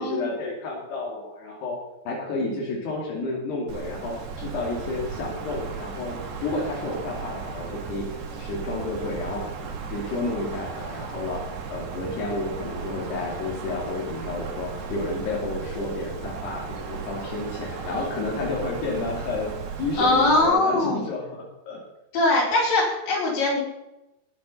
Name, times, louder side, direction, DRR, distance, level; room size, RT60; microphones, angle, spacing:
voice 1, 0.0-1.8 2.1-9.5 9.8-11.4 11.7-19.5 19.8-21.8, left 2 dB, 80° left, -2 dB, 4.9 m, -31 dB
Wind, 3.7-20.5, right 5 dB, 75° right, 4.4 m, -36 dB
voice 2, 20.0-21.0 22.1-23.6, left 2 dB, 60° left, -5 dB, 6.0 m, -21 dB
20.0 x 11.0 x 5.6 m, 0.93 s
omnidirectional pair, 4.7 m